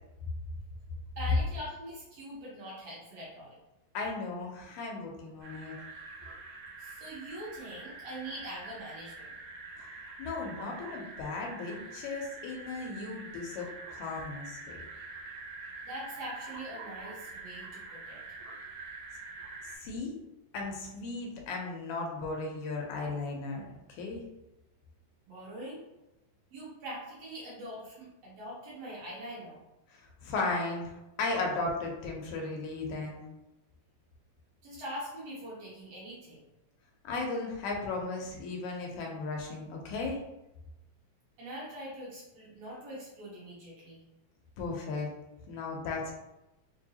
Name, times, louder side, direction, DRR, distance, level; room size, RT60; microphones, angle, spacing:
voice 1, 1.2-3.6 6.8-9.3 15.8-18.2 25.3-25.8 26.5-29.6 34.6-36.4 41.4-44.0, equal, 65° right, -6 dB, 1.9 m, -43 dB
voice 2, 3.9-5.7 10.2-14.6 19.8-20.2 20.5-24.2 29.9-30.9 31.2-33.2 37.0-40.2 44.6-45.1 45.5-46.1, left 3 dB, 80° left, 0 dB, 1.3 m, -36 dB
sound 1, 5.4-19.8, right 3 dB, 90° right, 2.3 m, -45 dB
4.6 x 2.6 x 2.7 m, 0.95 s
omnidirectional pair, 3.4 m